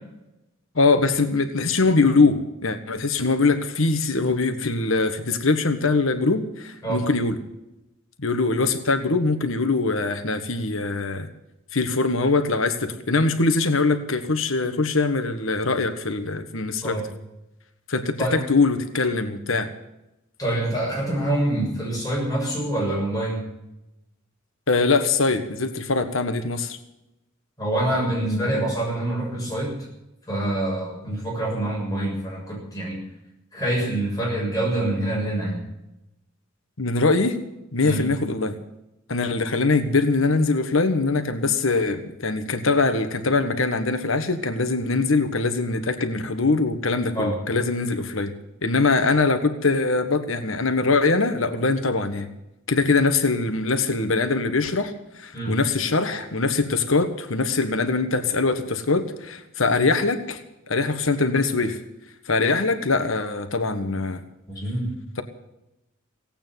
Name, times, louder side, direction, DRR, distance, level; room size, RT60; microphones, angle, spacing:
voice 1, 0.7-7.4 8.2-11.3 11.7-17.0 17.9-19.7 24.7-26.8 36.8-37.4 37.7-38.6 39.1-48.3 48.6-52.3 52.7-60.4 60.7-61.8 62.3-64.2, left 3 dB, 70° left, 8 dB, 1.5 m, -22 dB
voice 2, 20.4-23.5 27.6-29.8 30.3-33.0 33.5-35.7 37.8-38.1 47.2-47.4 55.3-55.6 64.5-64.9, right 1 dB, 20° left, -3 dB, 6.9 m, -26 dB
17.5 x 8.9 x 9.2 m, 0.89 s
head